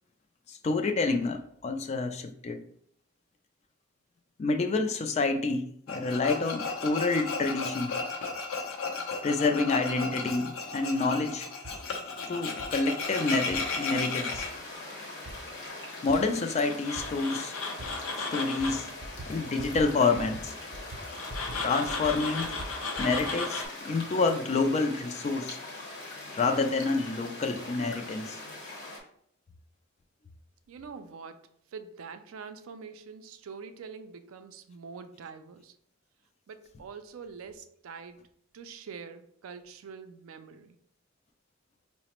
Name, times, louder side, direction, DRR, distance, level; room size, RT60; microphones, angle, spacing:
voice 1, 0.5-2.7 4.4-8.0 9.2-11.5 12.2-14.5 16.0-17.6 18.2-18.9 19.3-20.5 21.6-22.6 23.0-25.6 26.3-28.4, left 3 dB, 30° left, 6 dB, 0.3 m, -28 dB
Tools, 5.9-14.5 16.6-18.9 21.1-23.6, left 4 dB, 80° left, 0.6 m, -34 dB
sound 1, 11.6-11.8 12.6-12.7 13.5-13.6 14.3-14.4 15.3-15.4 16.1-16.2 17.0-17.1 17.8-17.9 18.6-18.7 19.0-19.3 19.6-19.9 20.1-20.4 20.7-21.6 21.9-23.3, right 1 dB, 45° right, 0.6 m, -42 dB
sound 2, 13.0-29.0, left 2 dB, 55° left, 0.9 m, -42 dB
voice 2, 30.7-35.8 36.5-38.3 38.5-40.8, right 5 dB, 80° right, 9 dB, 0.4 m, -45 dB
4.8 x 2.0 x 2.9 m, 0.67 s
head